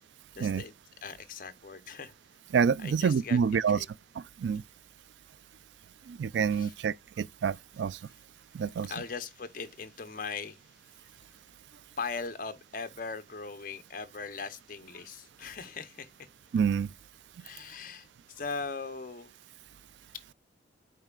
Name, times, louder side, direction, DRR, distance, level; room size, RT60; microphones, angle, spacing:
voice 1, 0.3-0.7 1.0-2.2 2.8-3.9 6.5-6.7 8.9-10.6 12.0-16.3 17.4-19.3, left 5 dB, 50° left, 0.8 m, -40 dB
voice 2, 2.5-3.8 4.2-4.6 6.1-8.0 8.5-8.9 16.5-16.9, right 6 dB, 80° right, 0.3 m, -27 dB
10.5 x 4.5 x 2.4 m
head